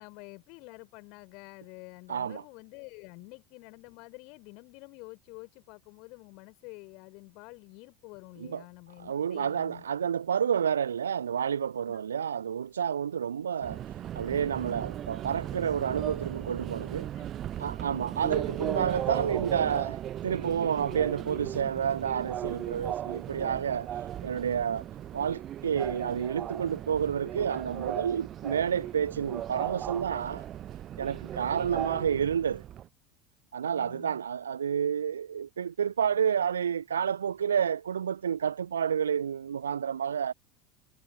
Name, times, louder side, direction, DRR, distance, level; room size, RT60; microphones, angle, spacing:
voice 1, 0.0-9.8 11.9-12.0 17.0-17.3 18.1-18.4 31.7-32.3 33.7-34.2, left 29 dB, 50° left, 5.4 m, -49 dB
voice 2, 2.1-2.4 8.4-8.6 9.0-13.8 14.2-17.1 17.6-24.8 25.1-30.4 31.0-32.6 33.5-40.3, right 8 dB, 75° right, 0.4 m, -30 dB
Subway metro underground, 13.6-32.9, right 11 dB, 35° right, 0.8 m, -37 dB
figure-of-eight pair, 75°, 0 cm